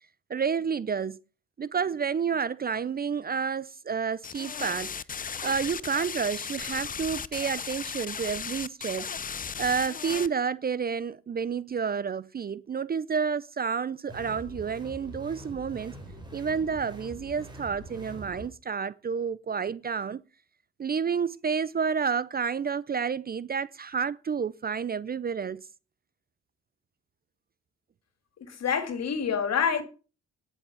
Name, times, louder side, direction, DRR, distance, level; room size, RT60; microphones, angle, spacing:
voice 1, 0.3-1.2 1.6-4.9 5.4-9.1 9.6-15.9 16.3-20.2 20.8-25.6, right 6 dB, 30° right, 0.5 m, -30 dB
sound 1, 4.2-10.3, left 6 dB, 30° left, 0.6 m, -36 dB
sound 2, 14.1-18.5, right 1 dB, 15° right, 4.6 m, -44 dB
voice 2, 28.4-29.8, left 7 dB, 60° left, 2.6 m, -27 dB
10.0 x 7.1 x 7.2 m
cardioid pair, 90°, 30 cm